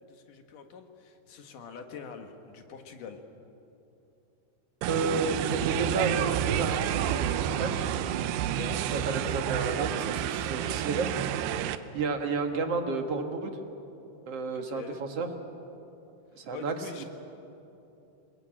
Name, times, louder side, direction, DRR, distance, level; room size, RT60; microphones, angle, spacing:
voice 1, 0.0-3.2 8.6-9.4 14.5-15.0 16.5-17.1, left 6 dB, 60° left, 5 dB, 2.9 m, -44 dB
voice 2, 4.8-7.9 8.9-11.1 11.4-13.5 14.3-15.3 16.3-17.0, right 4 dB, 55° right, 5 dB, 1.9 m, -32 dB
sound 1, 4.8-11.8, right 11 dB, 90° right, 2.9 m, -29 dB
28.0 x 20.5 x 8.9 m, 2.8 s
omnidirectional pair, 4.6 m